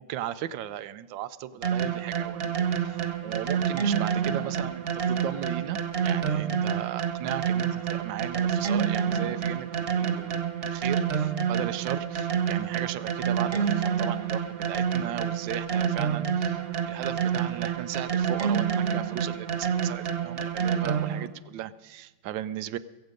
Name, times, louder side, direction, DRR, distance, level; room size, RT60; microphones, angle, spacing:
voice 1, 0.0-3.0 3.2-16.6 16.9-22.8, right 11 dB, 80° right, 15 dB, 1.3 m, -36 dB
sound 1, 1.6-21.3, right 7 dB, 50° right, 0.7 m, -28 dB
22.5 x 8.0 x 5.2 m, 1.2 s
omnidirectional pair, 2.1 m